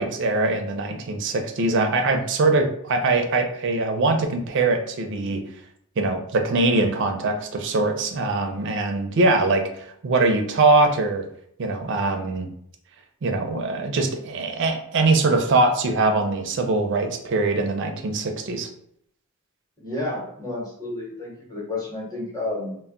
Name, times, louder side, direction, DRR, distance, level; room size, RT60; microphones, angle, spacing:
voice 1, 0.0-5.4 6.0-11.2 11.6-12.5 13.2-18.7, right 2 dB, 55° right, 5 dB, 0.4 m, -22 dB
voice 2, 19.8-22.8, left 2 dB, 15° left, -5 dB, 0.9 m, -31 dB
2.2 x 2.1 x 3.6 m, 0.69 s
head